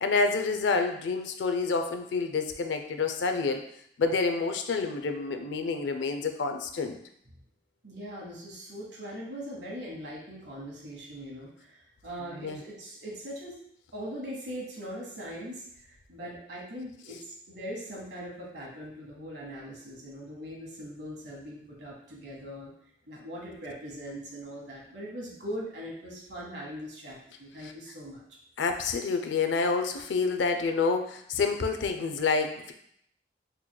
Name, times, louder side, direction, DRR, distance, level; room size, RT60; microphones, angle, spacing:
voice 1, 0.0-3.6 4.0-7.0 12.3-12.6 27.6-27.7 28.6-32.7, left 4 dB, 85° left, 6 dB, 0.4 m, -28 dB
voice 2, 7.8-13.6 13.9-22.7 23.0-28.2, equal, 70° right, -2 dB, 1.1 m, -41 dB
4.1 x 3.0 x 2.2 m, 0.69 s
head